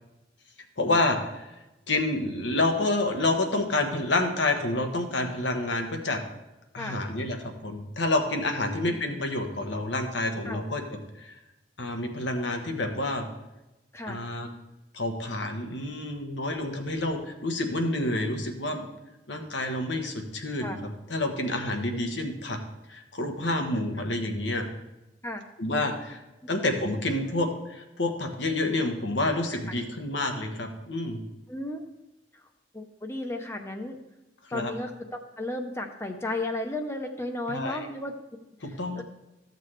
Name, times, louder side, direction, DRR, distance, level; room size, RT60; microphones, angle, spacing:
voice 1, 0.8-1.5 1.9-6.2 6.7-10.8 11.2-11.4 11.8-13.3 14.1-14.5 14.9-18.9 19.3-20.8 21.1-22.6 22.9-24.7 25.6-26.2 26.5-31.2 34.5-34.7 37.5-37.9 38.6-39.0, left 2 dB, 90° left, 4 dB, 1.3 m, -28 dB
voice 2, 8.6-9.0 10.4-10.6 13.9-14.2 16.6-16.8 20.6-20.8 21.9-22.0 25.2-25.4 26.4-26.6 29.5-29.6 31.5-31.8 32.7-34.0 34.5-38.1 38.6-39.0, left 1 dB, 15° left, 4 dB, 0.7 m, -34 dB
14.0 x 6.7 x 3.3 m, 0.99 s
head